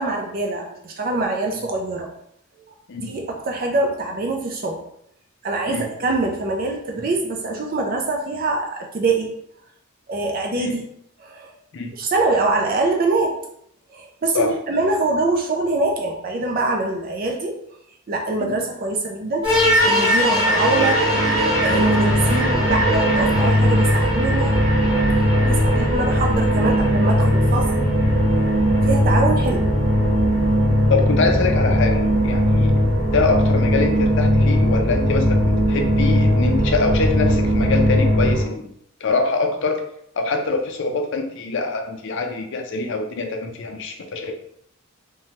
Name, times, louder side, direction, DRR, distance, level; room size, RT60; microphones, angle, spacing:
voice 1, 0.0-2.1 3.0-4.8 5.4-9.3 10.1-10.8 11.2-11.5 12.0-13.4 13.9-17.6 18.1-19.5 19.8-21.1 21.4-24.6 25.4-27.9 28.8-29.7, right 2 dB, 40° right, 1 dB, 0.4 m, -24 dB
sound 1, 19.4-38.4, equal, 25° right, 1.3 m, -18 dB
voice 2, 30.9-32.7 33.1-38.7 39.0-39.8 40.2-44.3, left 3 dB, 55° left, 4 dB, 0.4 m, -24 dB
3.1 x 2.2 x 2.7 m, 0.71 s
head